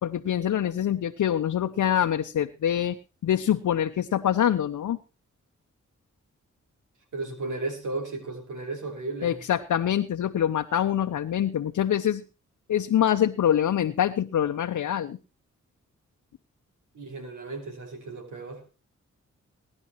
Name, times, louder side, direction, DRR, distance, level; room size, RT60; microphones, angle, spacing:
voice 1, 0.0-3.0 3.2-5.0 9.2-12.2 12.7-15.2, left 10 dB, 80° left, 5 dB, 0.8 m, -25 dB
voice 2, 7.1-9.4 16.9-18.6, right 3 dB, 90° right, 3 dB, 5.3 m, -34 dB
22.0 x 11.0 x 3.1 m, 0.33 s
cardioid pair, 60°, 30 cm